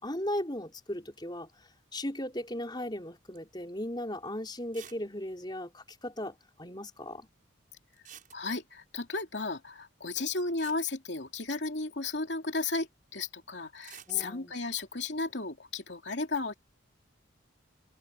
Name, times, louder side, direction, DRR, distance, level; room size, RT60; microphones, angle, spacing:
voice 1, 0.0-1.5 1.9-7.3 14.1-14.5, left 1 dB, 20° left, 4.5 m, -37 dB
sound 1, 3.4-3.6 4.0-4.1 4.7-5.1 5.3-5.4 5.6-5.7 7.9-8.8 10.2-10.3 10.6-11.8 13.7-14.2, right 9 dB, 40° right, 7.2 m, -51 dB
voice 2, 8.3-16.5, left 3 dB, 55° left, 3.0 m, -34 dB
open air
head